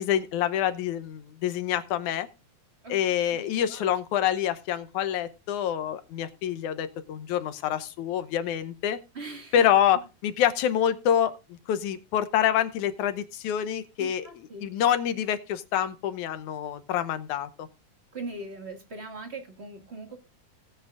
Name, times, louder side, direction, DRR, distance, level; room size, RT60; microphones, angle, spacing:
voice 1, 0.0-2.3 2.9-9.0 9.5-14.3 14.6-17.7, left 10 dB, 75° left, 2.3 m, -26 dB
voice 2, 3.3-3.9 9.1-9.6 14.0-14.7 18.1-20.2, right 3 dB, 25° right, 1.8 m, -40 dB
18.0 x 9.1 x 2.5 m
omnidirectional pair, 3.6 m